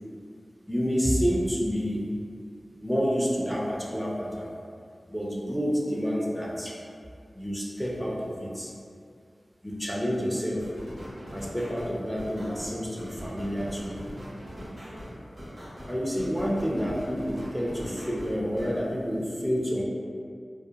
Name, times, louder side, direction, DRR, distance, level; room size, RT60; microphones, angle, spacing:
voice 1, 0.7-2.1 2.8-4.5 5.1-6.8 7.3-8.7 9.6-10.7 11.3-14.1 15.9-19.8, equal, ahead, -4 dB, 0.4 m, -29 dB
sound 1, 10.6-18.8, equal, 55° right, 0.8 m, -41 dB
2.4 x 2.0 x 2.8 m, 2.3 s
wide cardioid pair, 60°, 0 cm